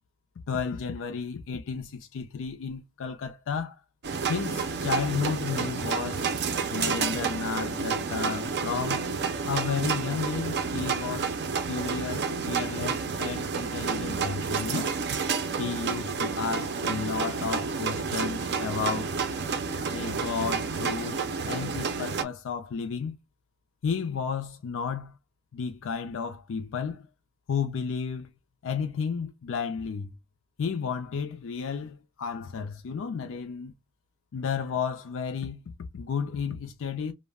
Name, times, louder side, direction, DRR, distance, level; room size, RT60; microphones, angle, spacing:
voice 1, 0.5-3.8 4.3-6.3 6.7-9.1 9.5-11.4 11.7-15.0 15.6-19.1 19.9-21.2 21.5-23.2 23.8-25.2 25.5-27.1 27.5-28.3 28.6-30.1 30.6-33.7 34.3-37.1, left 6 dB, 60° left, 0.4 m, -32 dB
sound 1, 4.0-22.2, right 5 dB, 50° right, 0.5 m, -30 dB
2.2 x 2.1 x 3.4 m
head